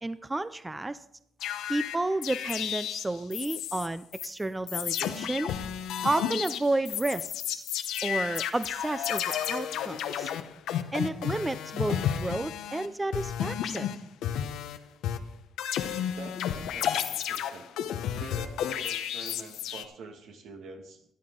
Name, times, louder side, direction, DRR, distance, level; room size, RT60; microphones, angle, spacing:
voice 1, 0.0-1.0 1.7-5.5 6.0-7.6 8.0-10.3 10.9-13.9, right 2 dB, 15° right, 13 dB, 0.4 m, -31 dB
sound 1, 1.4-3.9 4.1-4.3 4.7-12.9 13.1-14.8 15.0-19.8, left 9 dB, 85° left, 0.8 m, -32 dB
voice 2, 16.1-17.7 18.2-21.0, right 3 dB, 75° right, 4 dB, 1.7 m, -46 dB
14.0 x 10.5 x 3.8 m, 0.74 s
cardioid pair, 90°, 0 cm